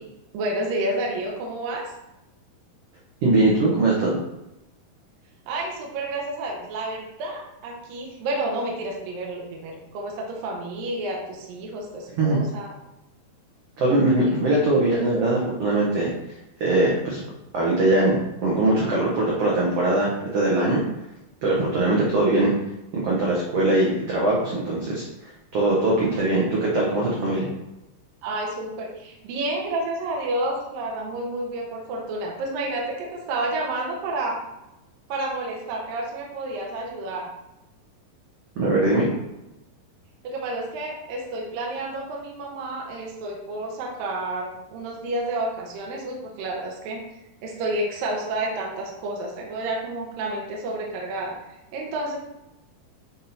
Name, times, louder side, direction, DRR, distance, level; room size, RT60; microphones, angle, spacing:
voice 1, 0.3-1.9 5.5-12.7 28.2-34.4 35.1-37.3 40.2-47.0 47.4-52.2, right 2 dB, 75° right, -1 dB, 2.8 m, -30 dB
voice 2, 3.2-4.2 12.2-12.4 13.8-16.1 16.6-17.2 17.5-20.8 21.4-22.5 22.9-25.0 25.5-27.5 38.6-39.1, right 2 dB, 55° right, -4 dB, 1.7 m, -21 dB
9.9 x 3.7 x 4.3 m, 0.94 s
omnidirectional pair, 4.3 m